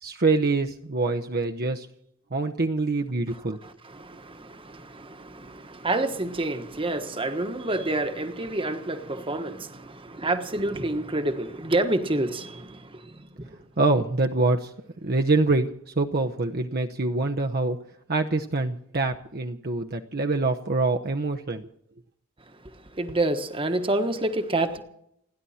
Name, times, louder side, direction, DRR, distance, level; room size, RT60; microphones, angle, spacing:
voice 1, 0.0-1.9 2.3-3.6 13.8-14.7 15.0-15.7 16.0-17.8 18.1-21.6, right 3 dB, 45° right, 0.9 m, -25 dB
voice 2, 3.3-13.7 22.4-24.8, right 2 dB, 25° right, 1.3 m, -29 dB
30.0 x 11.0 x 4.3 m
head